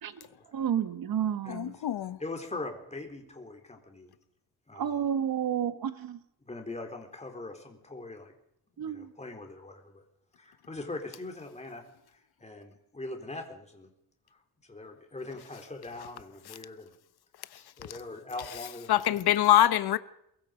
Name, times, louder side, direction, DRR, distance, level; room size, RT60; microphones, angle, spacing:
voice 1, 0.0-1.8 4.7-6.2 8.8-9.1, right 9 dB, 65° right, 1.6 m, -31 dB
voice 2, 1.5-2.2 16.5-16.6 17.5-17.6 17.9-18.0 18.9-20.0, left 12 dB, 75° left, 1.2 m, -24 dB
voice 3, 2.2-4.1 4.7-4.9 6.4-8.3 8.8-10.0 10.4-11.8 12.4-13.9 14.6-16.9 17.5-19.0, left 2 dB, 15° left, 4.0 m, -41 dB
22.5 x 22.5 x 5.2 m
wide cardioid pair, 135°, 38 cm